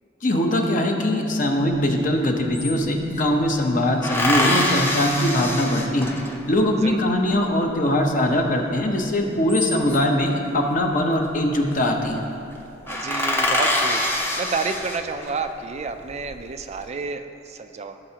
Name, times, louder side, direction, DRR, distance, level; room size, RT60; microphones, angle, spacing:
voice 1, 0.2-6.1 6.5-12.2, left 1 dB, 45° left, 2 dB, 0.9 m, -21 dB
sound 1, 1.9-2.0 2.2-3.3 4.0-6.5 9.2-10.2 11.4-11.7 12.0-12.2 12.5-12.6 12.9-15.4 16.0-16.7, left 1 dB, 10° left, 0.7 m, -25 dB
voice 2, 12.8-18.0, right 4 dB, 35° right, 8 dB, 0.4 m, -30 dB
16.0 x 6.7 x 2.9 m, 2.8 s
head